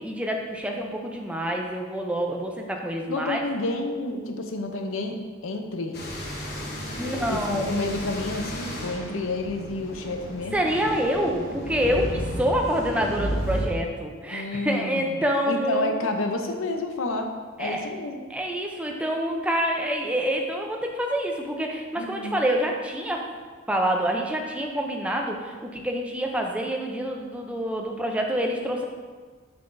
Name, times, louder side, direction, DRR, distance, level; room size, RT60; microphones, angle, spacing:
voice 1, 0.0-3.4 7.0-7.6 10.5-15.9 17.6-17.9 18.3-23.2 23.7-28.8, equal, 5° right, 1 dB, 0.5 m, -27 dB
voice 2, 3.1-5.2 5.4-6.0 7.0-10.7 14.3-17.3 17.6-18.2 22.0-22.4, left 2 dB, 75° left, 5 dB, 0.6 m, -30 dB
sound 1, 5.9-13.7, equal, 50° left, 1.1 m, -33 dB
6.8 x 5.8 x 2.6 m, 1.5 s
head